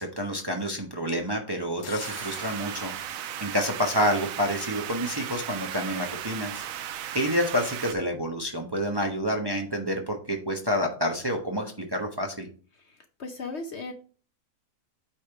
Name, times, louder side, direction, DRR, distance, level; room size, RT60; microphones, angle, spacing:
voice 1, 0.0-2.9 3.4-6.7 7.1-12.5, equal, 20° right, 2 dB, 0.9 m, -28 dB
sound 1, 1.8-4.7, left 7 dB, 75° left, 1.3 m, -46 dB
sound 2, 2.0-7.9, right 10 dB, 70° right, 1.0 m, -36 dB
voice 2, 12.7-13.9, left 3 dB, 55° left, 6 dB, 1.0 m, -37 dB
8.8 x 3.5 x 4.6 m, 0.40 s
omnidirectional pair, 1.6 m